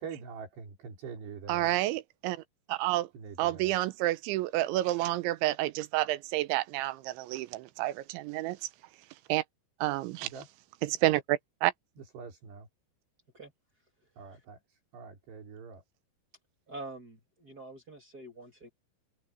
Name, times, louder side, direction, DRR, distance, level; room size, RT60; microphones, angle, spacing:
voice 1, 0.0-1.8 3.1-3.8 10.2-10.5 12.0-12.7 14.2-15.8, right 6 dB, 65° right, 6.1 m, -44 dB
voice 2, 1.5-2.4 2.7-3.1 3.4-8.6 9.3-9.4 9.8-10.3 10.9-11.7, right 16 dB, 85° right, 3.3 m, -29 dB
voice 3, 16.7-18.7, right 2 dB, 30° right, 1.8 m, -45 dB
open air
omnidirectional pair, 5.2 m